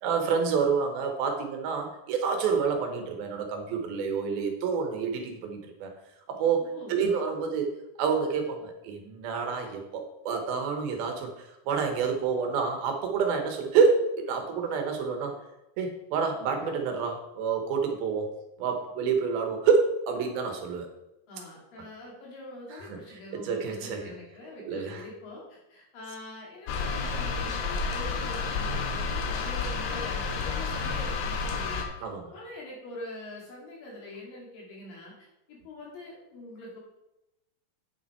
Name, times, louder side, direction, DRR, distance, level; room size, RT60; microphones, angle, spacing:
voice 1, 0.0-5.9 6.3-6.6 6.9-7.7 8.0-15.3 15.8-18.3 18.6-20.9 22.9-23.0 23.4-24.0 24.7-25.0 32.0-32.3, right 5 dB, 75° right, 4 dB, 2.9 m, -28 dB
voice 2, 6.6-7.0 21.3-36.8, left 1 dB, 65° left, -3 dB, 4.1 m, -44 dB
sound 1, 26.7-31.8, left 4 dB, 80° left, 3.1 m, -30 dB
9.0 x 7.1 x 4.4 m, 0.91 s
omnidirectional pair, 4.5 m